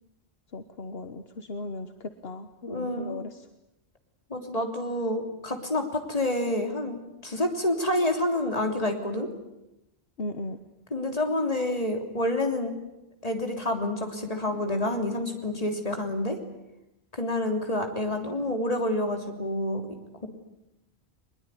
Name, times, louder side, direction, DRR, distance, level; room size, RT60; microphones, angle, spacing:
voice 1, 0.5-3.4 10.2-10.6, left 2 dB, 70° left, 8 dB, 1.4 m, -37 dB
voice 2, 2.7-3.2 4.3-7.0 7.2-9.3 10.9-12.7 13.2-16.4 17.1-19.8, left 1 dB, 35° left, 4 dB, 3.4 m, -28 dB
22.5 x 22.0 x 10.0 m, 0.92 s
omnidirectional pair, 1.1 m